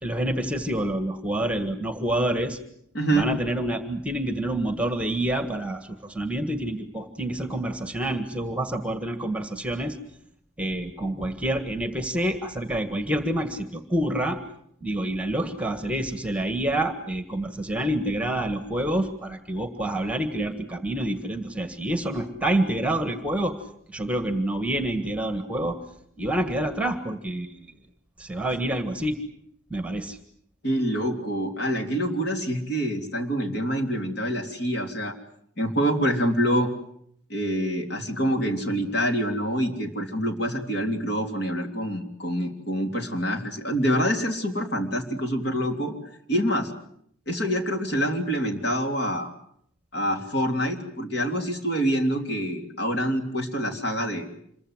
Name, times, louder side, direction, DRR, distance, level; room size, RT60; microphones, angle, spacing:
voice 1, 0.0-2.6 3.1-10.0 10.6-14.4 14.8-23.6 23.9-25.8 26.2-27.6 28.2-29.2 29.7-30.2, right 1 dB, 5° right, 8 dB, 1.6 m, -27 dB
voice 2, 2.9-3.3 30.6-35.1 35.6-36.7 37.3-45.9 46.3-46.7 47.3-49.3 49.9-54.3, equal, 50° left, 4 dB, 3.5 m, -26 dB
27.0 x 22.5 x 8.0 m, 0.69 s
head